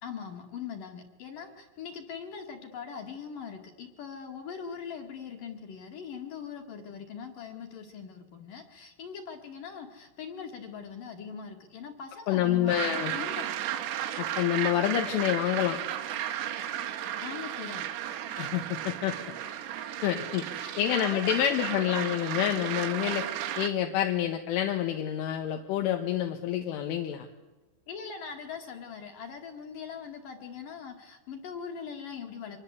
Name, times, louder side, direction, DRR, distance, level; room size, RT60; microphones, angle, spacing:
voice 1, 0.0-13.5 17.2-17.9 20.6-22.0 27.9-32.6, left 6 dB, 50° left, 4 dB, 3.1 m, -41 dB
voice 2, 12.3-13.1 14.2-15.8 18.4-19.2 20.0-20.4 20.8-23.3 23.6-27.3, left 11 dB, 75° left, 4 dB, 3.8 m, -28 dB
sound 1, 12.7-23.7, right 11 dB, 80° right, 4.2 m, -34 dB
25.5 x 21.0 x 8.3 m, 1.1 s
omnidirectional pair, 5.9 m